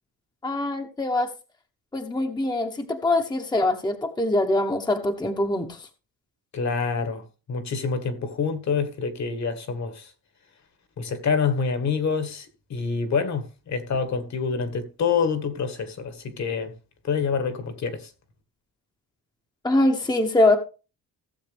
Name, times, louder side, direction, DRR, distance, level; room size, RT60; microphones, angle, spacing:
voice 1, 0.4-1.3 1.9-5.9 19.6-20.6, left 2 dB, 10° left, 1.1 m, -23 dB
voice 2, 6.5-7.2 7.5-10.1 11.0-16.7 17.0-18.1, left 5 dB, 50° left, 1.8 m, -27 dB
16.0 x 7.2 x 3.4 m
cardioid pair, 140°, 36 cm